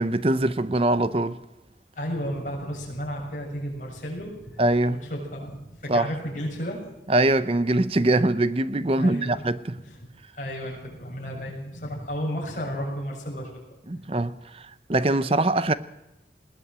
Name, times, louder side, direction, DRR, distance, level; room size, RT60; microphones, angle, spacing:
voice 1, 0.0-1.4 4.6-5.0 5.9-6.1 7.1-9.8 13.9-15.7, right 2 dB, 35° right, 0.7 m, -23 dB
voice 2, 2.0-4.6 4.9-6.9 9.0-9.5 9.8-10.1 10.3-13.5, equal, 45° left, 7.1 m, -33 dB
20.5 x 17.0 x 7.6 m
head